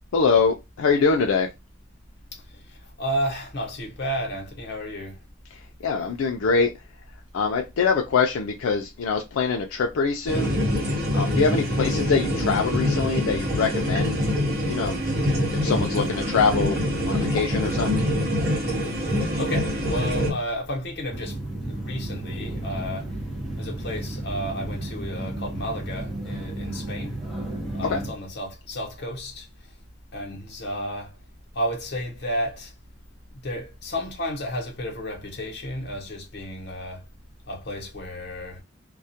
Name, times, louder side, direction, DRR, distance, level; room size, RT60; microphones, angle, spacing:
voice 1, 0.1-1.5 5.5-6.7 7.3-10.5 11.1-14.2 14.7-15.0 15.5-16.8 17.0-18.0 27.8-28.0, left 5 dB, 80° left, 0.4 m, -24 dB
voice 2, 2.3-5.2 11.4-11.6 18.9-19.0 19.4-23.2 23.6-27.2 27.7-29.7 30.1-31.2 31.5-32.7 33.3-37.1 37.5-38.6, equal, 55° left, 0.8 m, -32 dB
sound 1, 10.3-20.3, left 1 dB, 50° right, 0.8 m, -25 dB
sound 2, 21.1-28.1, right 1 dB, ahead, 0.6 m, -33 dB
2.3 x 2.1 x 2.7 m
head